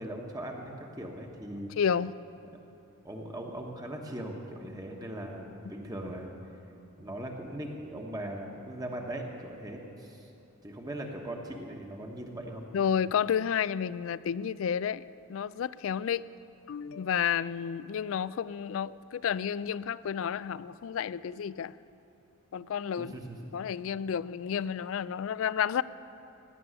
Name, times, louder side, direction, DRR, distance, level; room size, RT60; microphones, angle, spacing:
voice 1, 0.0-1.7 3.0-6.3 7.0-10.3 10.6-12.6 23.0-23.4, right 1 dB, 15° right, 1 dB, 1.1 m, -39 dB
voice 2, 1.8-2.1 12.7-15.0 15.3-16.2 16.7-21.8 22.5-23.1 23.5-25.8, left 8 dB, 65° left, 19 dB, 0.3 m, -31 dB
16.5 x 6.9 x 9.7 m, 2.8 s
head